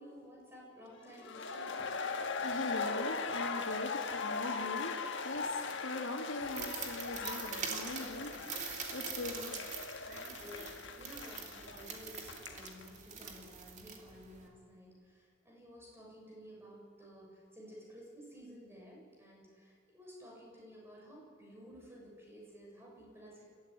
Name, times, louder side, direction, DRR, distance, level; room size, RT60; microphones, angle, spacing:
voice 1, 0.0-1.8 10.0-23.4, equal, 10° right, -3 dB, 7.2 m, -53 dB
sound 1, 1.2-12.8, left 4 dB, 65° left, 1.5 m, -39 dB
voice 2, 2.4-9.7, left 2 dB, 90° left, -1 dB, 2.6 m, -42 dB
sound 2, 6.4-14.5, right 6 dB, 40° right, 2.6 m, -44 dB
28.5 x 14.0 x 9.8 m, 2.1 s
head